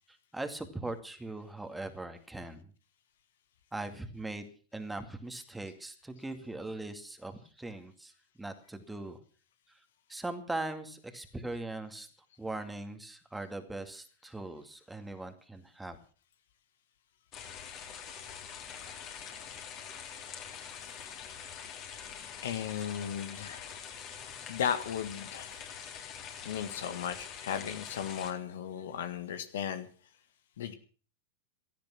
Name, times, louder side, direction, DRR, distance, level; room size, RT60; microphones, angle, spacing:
voice 1, 0.1-2.7 3.7-4.5 4.7-8.1 8.4-9.2 9.7-9.8 10.1-12.1 12.4-16.0, right 2 dB, 5° right, 7 dB, 2.3 m, -40 dB
sound 1, 17.3-28.3, left 7 dB, 35° left, 3.6 m, -45 dB
voice 2, 22.4-23.8 24.2-25.6 26.5-29.9 30.6-30.7, left 8 dB, 60° left, 10 dB, 1.7 m, -36 dB
17.0 x 13.5 x 6.0 m, 0.40 s
figure-of-eight pair, 90°, 0 cm